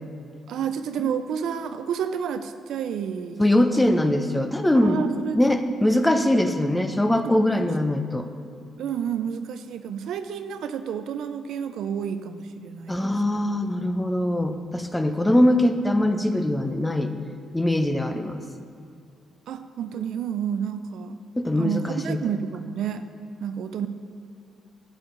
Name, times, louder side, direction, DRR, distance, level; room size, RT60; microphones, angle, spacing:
voice 1, 0.5-3.4 4.7-5.4 7.2-7.7 8.8-13.1 19.5-21.2 21.6-23.0 23.4-23.9, right 8 dB, 75° right, 10 dB, 0.4 m, -30 dB
voice 2, 3.4-5.0 5.3-8.3 12.9-17.1 17.5-18.4 21.4-22.2, left 1 dB, 10° left, 7 dB, 0.6 m, -22 dB
11.0 x 7.3 x 3.9 m, 2.5 s
cardioid pair, 90°, 0 cm